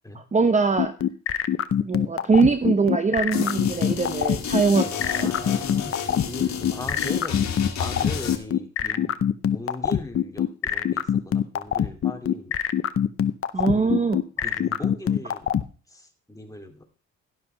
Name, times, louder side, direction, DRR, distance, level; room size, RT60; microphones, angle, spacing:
voice 1, 0.1-0.9 1.8-5.3 13.5-14.2, right 4 dB, 25° right, 9 dB, 0.8 m, -22 dB
sound 1, 0.8-15.6, left 9 dB, 45° left, 0.8 m, -23 dB
sound 2, 3.3-8.4, left 7 dB, 65° left, 1.9 m, -31 dB
voice 2, 4.9-7.4 7.8-9.2 9.5-12.6 13.7-14.0 14.4-15.5 15.9-16.8, left 2 dB, 10° left, 3 dB, 2.5 m, -39 dB
12.0 x 11.5 x 3.4 m, 0.36 s
cardioid pair, 90°, 30 cm